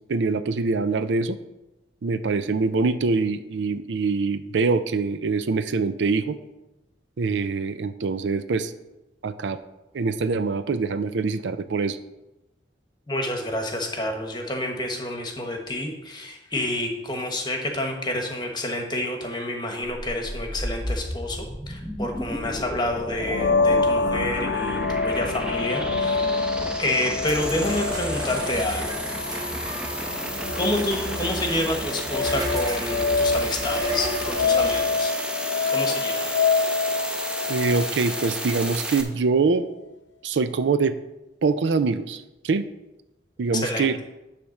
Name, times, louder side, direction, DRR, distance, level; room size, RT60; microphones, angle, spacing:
voice 1, 0.1-1.4 2.0-6.4 7.2-8.7 9.2-9.6 9.9-12.0 37.5-39.7 40.2-41.0 41.4-42.7 43.4-44.0, right 4 dB, 85° right, 12 dB, 0.5 m, -24 dB
voice 2, 13.1-26.4 26.8-29.0 30.6-35.1 35.7-36.3 43.5-43.9, left 1 dB, 25° left, 3 dB, 1.1 m, -28 dB
sound 1, 19.8-39.0, equal, 5° right, 0.7 m, -33 dB
sound 2, 23.2-38.8, left 4 dB, 80° left, 0.6 m, -27 dB
sound 3, 27.2-34.8, equal, 20° right, 2.2 m, -33 dB
10.0 x 3.5 x 6.4 m, 0.97 s
head